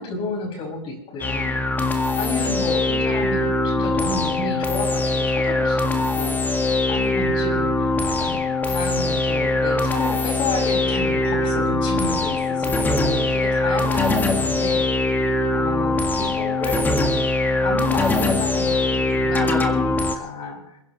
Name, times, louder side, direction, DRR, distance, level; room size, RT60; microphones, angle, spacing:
voice 1, 0.0-1.9 2.2-6.4 6.9-8.4 8.7-15.1 15.5-16.9 17.6-20.8, left 3 dB, 35° left, 2 dB, 6.1 m, -31 dB
sound 1, 1.2-20.1, left 2 dB, 10° left, 1.8 m, -22 dB
28.5 x 10.5 x 3.1 m, 0.84 s
hypercardioid pair, 120°, 15 cm